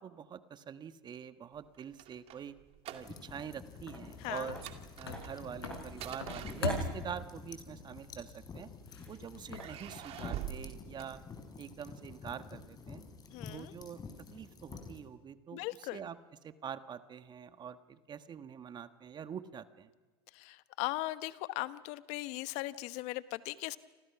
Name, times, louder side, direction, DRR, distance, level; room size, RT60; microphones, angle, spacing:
voice 1, 0.0-2.6 2.9-4.6 5.0-8.7 9.1-11.2 11.6-13.0 13.5-14.0 14.3-16.2 16.4-19.9, right 8 dB, 35° right, 11 dB, 1.4 m, -44 dB
sound 1, 1.6-3.5 3.7-4.0 4.4-7.2 8.0-8.9 9.5-11.8, right 11 dB, 50° right, 2.4 m, -46 dB
sound 2, 2.9-10.6, left 3 dB, 90° left, 5.1 m, -43 dB
sound 3, 3.0-15.0, left 4 dB, 30° left, 4.8 m, -50 dB
voice 2, 13.3-13.7 15.5-16.0 20.4-23.8, left 18 dB, 60° left, 14 dB, 1.1 m, -38 dB
29.5 x 26.0 x 5.9 m, 1.3 s
hypercardioid pair, 85°, 13 cm